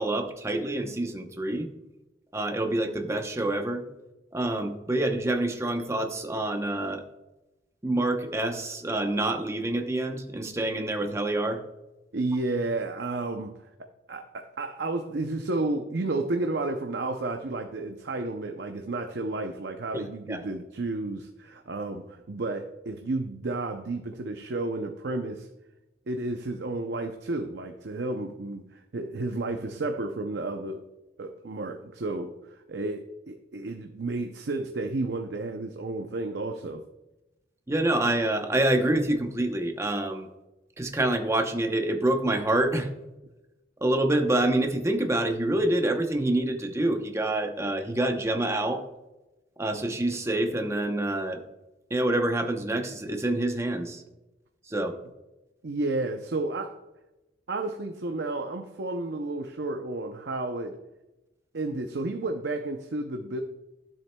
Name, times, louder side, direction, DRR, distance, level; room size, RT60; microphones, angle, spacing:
voice 1, 0.0-1.7 2.3-3.8 4.3-7.0 7.8-11.6 20.3-20.4 37.7-40.3 40.8-42.9 43.8-48.8 49.6-51.4 51.9-54.0 54.7-54.9, right 1 dB, 15° right, 5 dB, 0.8 m, -27 dB
voice 2, 12.1-13.7 14.1-25.5 26.1-30.8 31.2-36.9 55.6-56.8 57.5-60.8 61.5-63.4, right 2 dB, 65° right, 5 dB, 0.6 m, -32 dB
12.5 x 7.5 x 2.2 m, 0.99 s
head